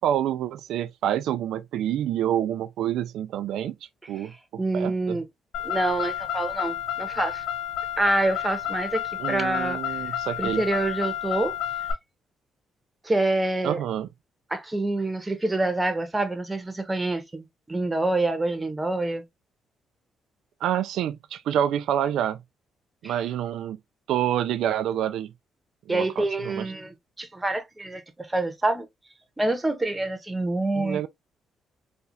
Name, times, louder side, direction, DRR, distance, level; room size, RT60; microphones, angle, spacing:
voice 1, 0.0-3.7 4.1-5.2 9.2-10.6 13.6-14.1 20.6-22.4 23.0-23.8 24.1-25.3 25.9-26.7 30.8-31.1, right 10 dB, 80° right, 0.3 m, -27 dB
voice 2, 4.6-5.2 5.6-7.4 8.0-11.5 13.0-13.8 14.5-19.2 23.0-23.2 25.9-28.9 29.4-31.1, right 2 dB, 15° right, 0.9 m, -27 dB
Car, 5.5-11.9, left 10 dB, 80° left, 0.9 m, -31 dB
4.2 x 2.4 x 2.5 m
cardioid pair, 90°, 0 cm